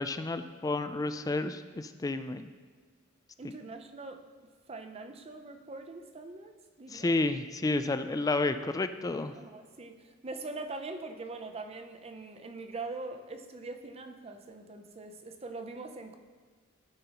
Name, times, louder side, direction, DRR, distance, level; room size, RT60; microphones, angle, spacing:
voice 1, 0.0-2.5 3.4-3.5 6.9-9.3, left 2 dB, 20° left, 10 dB, 0.3 m, -31 dB
voice 2, 3.4-4.2 4.7-7.1 9.4-10.0 10.2-16.2, right 3 dB, 30° right, 7 dB, 0.5 m, -42 dB
13.5 x 5.4 x 2.9 m, 1.5 s
head